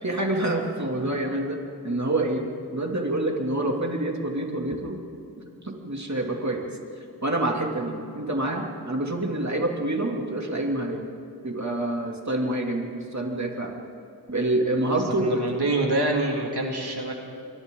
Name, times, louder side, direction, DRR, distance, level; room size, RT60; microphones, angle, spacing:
voice 1, 0.0-5.0 5.6-6.6 7.2-11.0 11.4-13.7 14.3-15.5, right 1 dB, 45° right, 1 dB, 2.8 m, -27 dB
voice 2, 14.9-17.1, right 2 dB, 90° right, 0 dB, 2.3 m, -26 dB
29.0 x 23.0 x 3.9 m, 2.7 s
wide cardioid pair, 45°, 38 cm